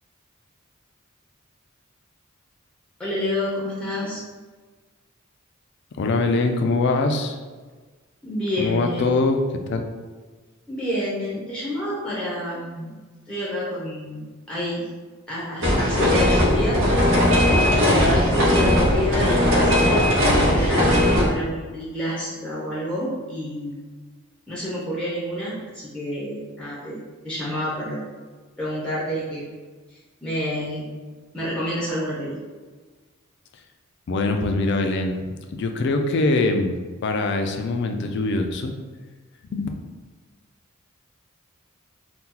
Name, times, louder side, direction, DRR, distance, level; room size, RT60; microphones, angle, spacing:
voice 1, 3.0-4.2 8.2-9.1 10.7-13.0 13.3-14.8 15.3-16.8 17.7-23.8 24.5-27.0 27.2-28.1 28.6-29.5 29.9-30.9 31.3-32.4, equal, 5° left, -7 dB, 0.6 m, -28 dB
voice 2, 6.0-7.4 8.6-9.9 34.1-35.2 35.5-36.8 37.0-38.7 39.5-39.7, left 3 dB, 55° left, 5 dB, 0.4 m, -23 dB
sound 1, 15.6-21.3, left 1 dB, 80° right, 0.8 m, -18 dB
2.8 x 2.2 x 3.7 m, 1.4 s
head